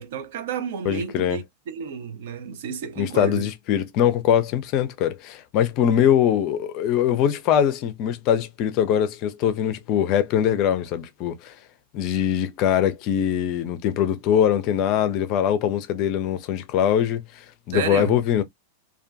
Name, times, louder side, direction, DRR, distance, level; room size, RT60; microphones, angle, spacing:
voice 1, 0.0-3.5 17.7-18.2, right 7 dB, 55° right, 0.4 m, -31 dB
voice 2, 0.9-1.4 3.0-11.5 11.9-18.4, left 9 dB, 40° left, 0.4 m, -22 dB
2.5 x 2.1 x 2.4 m
figure-of-eight pair, 90°, 0 cm